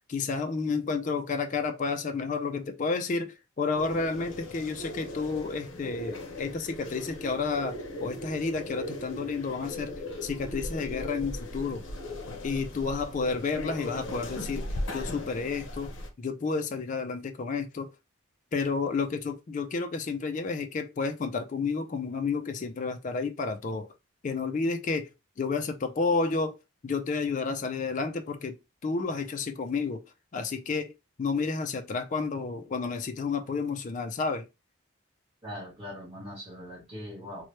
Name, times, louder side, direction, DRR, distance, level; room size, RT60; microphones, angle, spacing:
voice 1, 0.1-11.8 12.4-15.9 16.2-17.9 18.5-23.9 24.2-25.1 25.4-26.5 26.8-28.6 28.8-30.0 30.3-30.9 31.2-34.5, left 4 dB, 35° left, 0.3 m, -31 dB
sound 1, 3.7-16.1, left 1 dB, 60° left, 0.7 m, -38 dB
voice 2, 35.4-37.5, equal, 30° right, 1.3 m, -41 dB
2.9 x 2.1 x 3.0 m
head